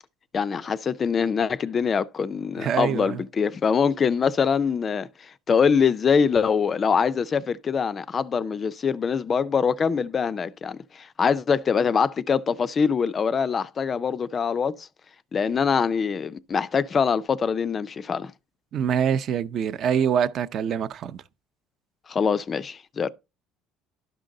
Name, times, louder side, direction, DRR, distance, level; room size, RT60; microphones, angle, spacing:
voice 1, 0.3-14.9 15.3-18.3 22.1-23.1, left 6 dB, 30° left, 0.4 m, -24 dB
voice 2, 2.6-3.2 18.7-21.2, right 8 dB, 45° right, 0.6 m, -25 dB
12.0 x 5.2 x 3.7 m
cardioid pair, 140°, 0 cm